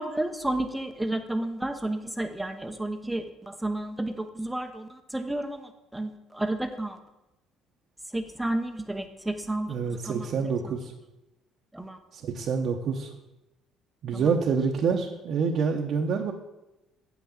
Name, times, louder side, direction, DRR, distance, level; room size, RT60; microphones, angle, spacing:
voice 1, 0.0-7.0 8.1-10.3 11.7-12.0 14.1-14.3, right 1 dB, 5° right, 7 dB, 0.8 m, -31 dB
voice 2, 9.7-10.9 12.1-13.1 14.0-16.3, right 5 dB, 60° right, 0 dB, 1.0 m, -27 dB
7.8 x 6.1 x 7.1 m, 0.96 s
cardioid pair, 105°, 0 cm